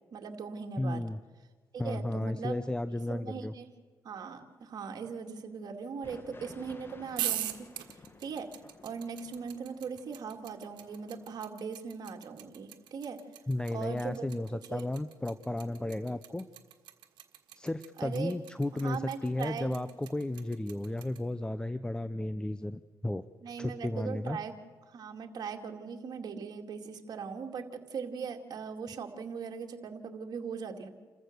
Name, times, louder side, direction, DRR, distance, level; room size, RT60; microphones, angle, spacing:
voice 1, 0.1-1.0 1.7-2.6 3.1-3.7 4.0-7.7 8.2-8.5 8.8-13.2 13.7-14.3 14.5-14.8 18.0-18.4 18.7-19.8 23.4-24.5 24.9-30.9, right 6 dB, 60° right, 3 dB, 2.3 m, -39 dB
voice 2, 0.8-1.2 1.8-3.5 13.5-16.5 17.6-23.2 23.6-24.4, left 1 dB, 10° left, 13 dB, 0.7 m, -34 dB
sound 1, 6.0-11.3, left 3 dB, 30° left, 2.0 m, -55 dB
sound 2, 7.1-21.2, right 12 dB, 85° right, 1.6 m, -40 dB
28.5 x 14.5 x 6.8 m, 1.4 s
cardioid pair, 85°, 8 cm